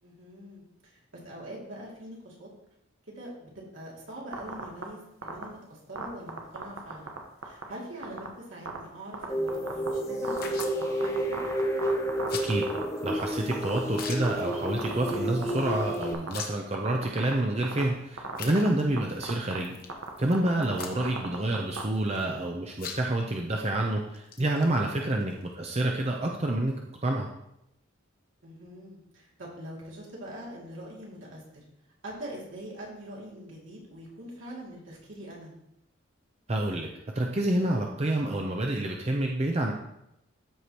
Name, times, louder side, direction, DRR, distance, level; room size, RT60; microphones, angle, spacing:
voice 1, 0.0-2.5 3.1-7.2 7.4-11.4 25.0-25.2 28.4-31.4 32.0-35.5, right 1 dB, 75° right, -4 dB, 2.5 m, -43 dB
sound 1, 4.3-4.8 5.2-5.4 6.0-7.2 7.4-7.6 8.0-8.3 8.7-8.8 9.1-9.9 10.2-13.2 13.5-14.3 14.5-15.1 15.4-16.3 16.7-17.3 17.6-17.8 18.2-18.7 19.0-19.1 19.2-19.6 19.9-21.8, right 4 dB, 90° right, 1.1 m, -35 dB
sound 2, 9.3-16.1, equal, 15° left, 0.6 m, -31 dB
sound 3, 9.5-9.6 10.4-10.8 12.3-12.6 13.0-13.1 13.3-13.4 13.9-14.6 14.9-15.1 15.4-15.5 15.9-16.7 17.4-17.5 18.3-19.0 19.6-20.4 20.6-21.2 21.7-22.4 22.7-23.3 23.7-23.8 24.1-26.1, left 6 dB, 50° left, 0.9 m, -41 dB
voice 2, 13.0-19.8 20.2-27.3 36.5-36.9 37.1-39.7, right 1 dB, 30° right, 1 dB, 0.6 m, -28 dB
13.5 x 4.8 x 2.9 m, 0.82 s
head